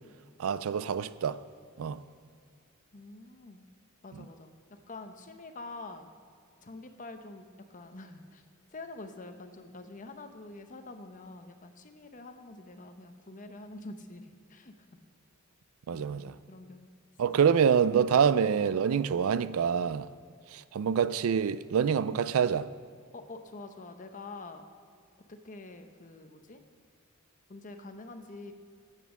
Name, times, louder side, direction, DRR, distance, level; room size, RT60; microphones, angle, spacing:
voice 1, 0.4-1.4 1.8-2.0 15.9-16.4 17.2-20.1 20.5-22.7, right 7 dB, 75° right, 0.4 m, -26 dB
voice 2, 2.9-3.6 4.0-6.1 6.6-8.4 8.7-14.7 15.9-16.9 23.1-24.7 25.3-26.6 27.5-28.5, left 2 dB, 40° left, 0.8 m, -46 dB
9.1 x 8.4 x 7.2 m
head